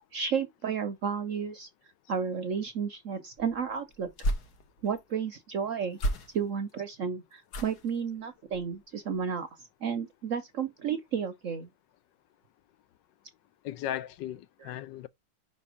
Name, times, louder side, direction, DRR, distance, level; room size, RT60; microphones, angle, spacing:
voice 1, 0.1-1.7 2.1-4.1 4.8-6.0 6.3-9.5 9.8-11.7 14.6-14.7, right 6 dB, 60° right, 0.8 m, -32 dB
sound 1, 3.4-5.0 5.9-6.7 7.5-8.0 8.5-8.8 9.1-9.2, right 1 dB, 60° left, 1.6 m, -34 dB
voice 2, 13.6-15.1, left 12 dB, 75° left, 1.2 m, -36 dB
5.4 x 4.3 x 4.8 m
omnidirectional pair, 2.0 m